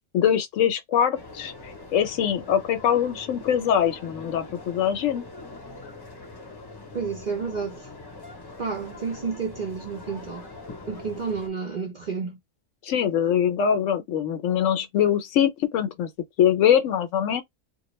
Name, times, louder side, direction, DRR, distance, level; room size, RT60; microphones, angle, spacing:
voice 1, 0.1-1.5 1.9-5.3 12.8-16.1 16.4-17.4, left 9 dB, 70° left, 0.9 m, -23 dB
sound 1, 1.1-11.5, left 3 dB, 25° left, 0.6 m, -43 dB
voice 2, 6.9-7.9 8.6-10.5 10.9-12.4, right 5 dB, 55° right, 0.5 m, -30 dB
2.5 x 2.2 x 3.0 m
omnidirectional pair, 1.4 m